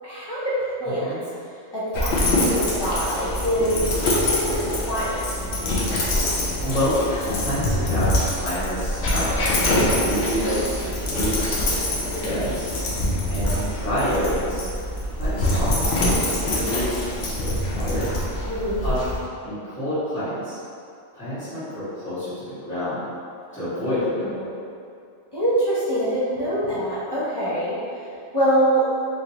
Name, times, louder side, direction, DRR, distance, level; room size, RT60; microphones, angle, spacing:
voice 1, 0.0-1.2 1.7-5.2 6.5-6.6 12.1-12.3 18.5-18.8 23.5-23.6 24.1-24.6 25.3-27.8 28.3-28.8, right 1 dB, 30° left, -12 dB, 0.4 m, -25 dB
Dog, 1.9-19.2, left 1 dB, 60° left, 0.8 m, -24 dB
voice 2, 6.6-7.0 7.3-10.8 11.1-12.7 13.3-14.7 15.1-16.1 16.3-18.1 18.8-19.0 19.4-20.6 21.1-23.0 23.5-24.3, equal, 5° left, -21 dB, 1.2 m, -28 dB
3.2 x 2.5 x 2.8 m, 2.4 s
omnidirectional pair, 1.4 m